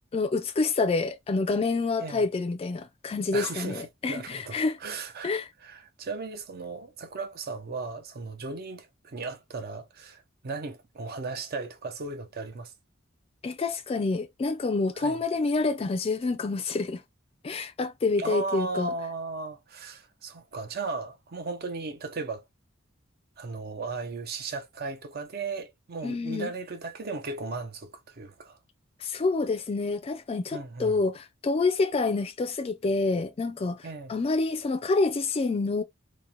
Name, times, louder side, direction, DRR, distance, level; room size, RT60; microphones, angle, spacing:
voice 1, 0.1-4.8 5.2-5.5 13.4-17.0 17.4-18.9 26.0-26.5 29.0-35.8, left 3 dB, 30° left, 0.3 m, -27 dB
voice 2, 3.3-5.3 5.6-12.7 15.0-15.2 18.2-22.5 23.4-28.6 30.5-31.0 33.8-34.1, right 3 dB, 50° right, 0.6 m, -36 dB
2.9 x 2.0 x 2.5 m
head